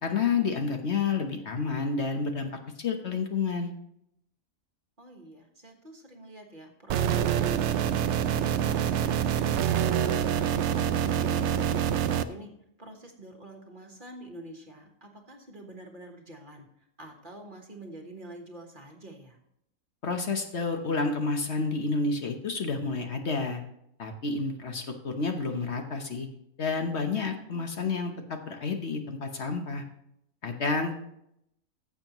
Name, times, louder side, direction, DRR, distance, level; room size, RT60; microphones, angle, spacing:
voice 1, 0.0-2.5 2.8-3.7 20.0-23.6 24.0-26.3 26.6-29.8 30.4-30.9, left 4 dB, 55° left, 4 dB, 1.2 m, -30 dB
voice 2, 5.0-8.0 12.8-16.6 17.0-19.4, right 1 dB, 35° right, 2 dB, 1.5 m, -47 dB
sound 1, 6.9-12.2, right 9 dB, 65° right, 0.8 m, -26 dB
15.0 x 7.2 x 3.0 m, 0.77 s
omnidirectional pair, 1.5 m